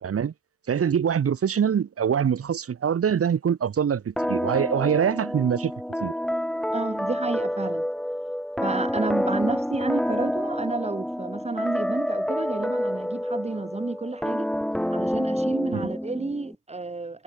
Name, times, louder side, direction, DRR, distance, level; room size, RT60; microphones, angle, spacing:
voice 1, 0.0-0.3 0.7-5.7 6.0-6.1 15.7-15.9, right 8 dB, 50° right, 2.9 m, -24 dB
sound 1, 4.2-16.6, equal, ahead, 2.6 m, -28 dB
voice 2, 6.7-7.9 8.6-14.5 14.9-17.2, right 3 dB, 20° right, 5.3 m, -30 dB
cardioid pair, 90°, 30 cm